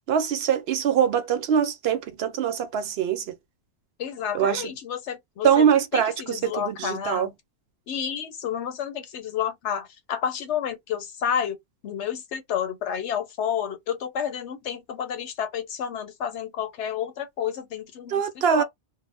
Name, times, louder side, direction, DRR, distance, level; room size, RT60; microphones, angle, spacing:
voice 1, 0.1-3.3 4.3-4.7 5.4-7.3 18.1-18.6, right 8 dB, 70° right, 0.8 m, -23 dB
voice 2, 4.0-5.6 5.9-7.3 7.9-11.6 11.8-18.6, left 8 dB, 85° left, 1.0 m, -30 dB
2.1 x 2.0 x 3.2 m
omnidirectional pair, 1.1 m